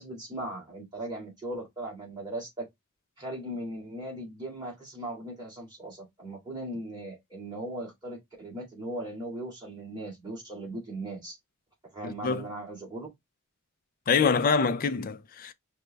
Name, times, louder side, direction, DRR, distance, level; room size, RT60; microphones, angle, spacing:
voice 1, 0.0-2.7 3.2-11.4 11.9-13.1, right 1 dB, 20° right, 2.1 m, -38 dB
voice 2, 12.0-12.4 14.1-15.5, left 5 dB, 40° left, 0.4 m, -25 dB
5.1 x 2.2 x 3.3 m
head